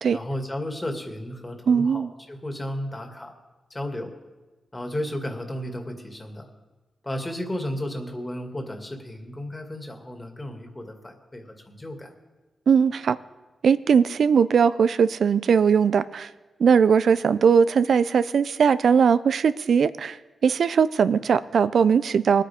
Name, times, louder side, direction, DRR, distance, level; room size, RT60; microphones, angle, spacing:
voice 1, 0.1-3.3 3.7-4.1 4.7-6.5 7.0-12.1, left 1 dB, 25° left, 3 dB, 2.3 m, -33 dB
voice 2, 1.7-2.1 12.7-13.2 13.6-16.3 16.6-20.2 20.4-22.4, right 6 dB, 75° right, 15 dB, 0.4 m, -19 dB
20.0 x 9.0 x 3.6 m, 1.2 s
cardioid pair, 50°, 0 cm